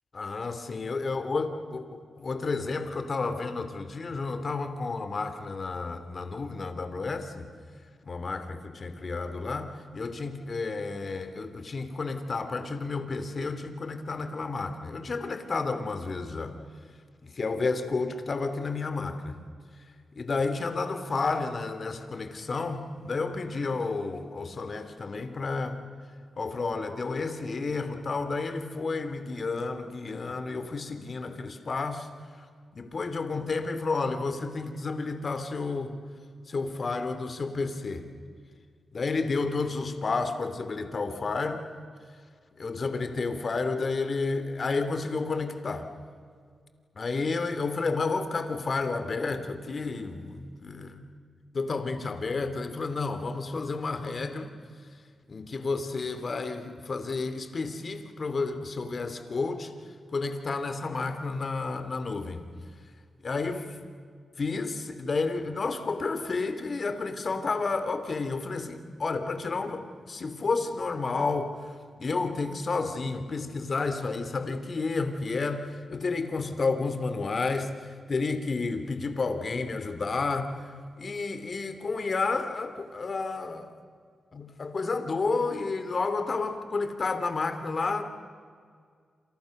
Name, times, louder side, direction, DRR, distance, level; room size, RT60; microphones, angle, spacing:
voice 1, 0.1-7.5 8.0-16.5 17.2-19.4 20.2-25.8 26.4-32.1 32.4-32.5 32.7-36.0 36.5-38.1 38.9-41.6 42.6-45.9 46.9-51.1 51.5-54.5 55.3-59.7 60.1-62.5 63.2-63.8 64.4-83.7 84.3-88.0, left 3 dB, 50° left, 9 dB, 2.9 m, -31 dB
28.0 x 28.0 x 6.6 m, 2.1 s
cardioid pair, 80°, 0 cm